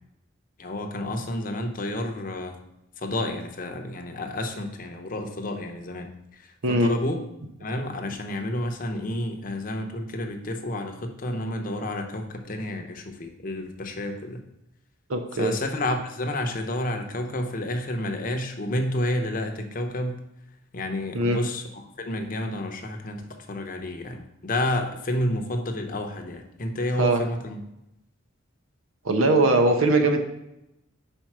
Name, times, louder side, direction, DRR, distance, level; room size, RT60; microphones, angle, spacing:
voice 1, 0.6-2.6 3.0-7.2 7.6-14.4 15.4-20.2 20.7-27.6, left 1 dB, 40° left, 4 dB, 0.7 m, -30 dB
voice 2, 15.1-15.5 21.1-21.4 27.0-27.2 29.0-30.2, right 2 dB, 85° right, 5 dB, 0.8 m, -21 dB
5.1 x 4.5 x 6.0 m, 0.86 s
head